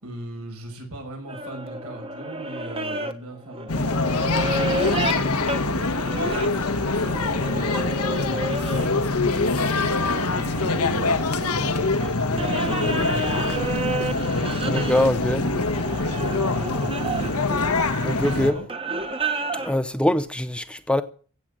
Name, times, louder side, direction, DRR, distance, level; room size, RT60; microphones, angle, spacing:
voice 1, 0.0-9.9 10.3-11.8 12.2-14.2 14.5-16.1 16.5-17.4 18.1-18.7, right 1 dB, 80° right, 5.9 m, -39 dB
sound 1, 1.3-8.9 9.3-19.8, right 3 dB, 25° right, 1.4 m, -32 dB
sound 2, 3.7-18.5, left 3 dB, 85° left, 1.5 m, -24 dB
voice 2, 14.6-15.4 18.0-18.6 19.5-21.0, left 1 dB, 5° left, 0.7 m, -23 dB
16.0 x 7.8 x 8.9 m
head